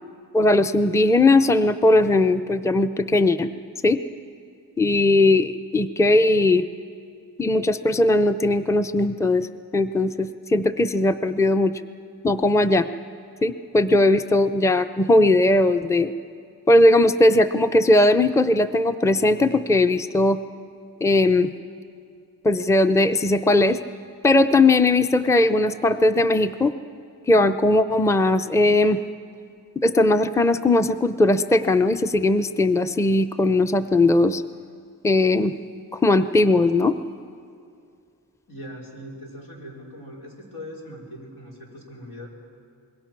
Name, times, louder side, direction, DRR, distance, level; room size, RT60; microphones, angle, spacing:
voice 1, 0.3-3.5 3.8-4.0 4.8-6.6 7.4-9.5 9.7-11.7 12.2-12.9 13.4-16.1 16.7-20.4 21.0-21.5 22.4-23.8 24.2-26.7 27.3-29.0 29.8-34.4 35.0-35.5 35.9-37.0, left 2 dB, 10° left, 9 dB, 0.6 m, -19 dB
voice 2, 38.5-42.3, equal, 90° left, -3 dB, 4.7 m, -40 dB
26.0 x 21.5 x 6.0 m, 2.4 s
wide cardioid pair, 75°, 37 cm